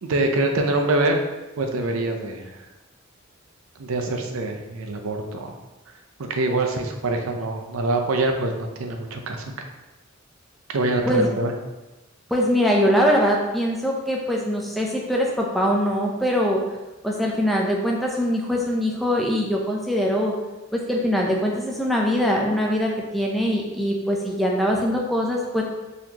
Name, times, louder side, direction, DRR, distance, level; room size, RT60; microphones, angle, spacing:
voice 1, 0.0-1.2 1.6-2.5 3.8-5.5 6.3-9.5 10.7-11.5, right 2 dB, 85° right, 4 dB, 0.5 m, -24 dB
voice 2, 12.3-16.6 17.0-20.4 20.7-25.6, equal, ahead, -2 dB, 0.5 m, -22 dB
4.1 x 2.9 x 2.8 m, 1.1 s
head